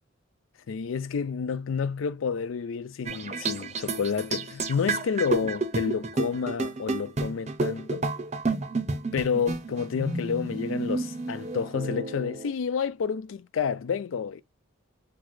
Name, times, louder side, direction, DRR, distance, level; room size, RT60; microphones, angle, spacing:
voice 1, 0.7-8.1 9.1-14.4, left 6 dB, 80° left, 0.4 m, -29 dB
sound 1, 3.1-12.5, right 3 dB, 35° right, 0.6 m, -31 dB
5.8 x 2.3 x 3.1 m
head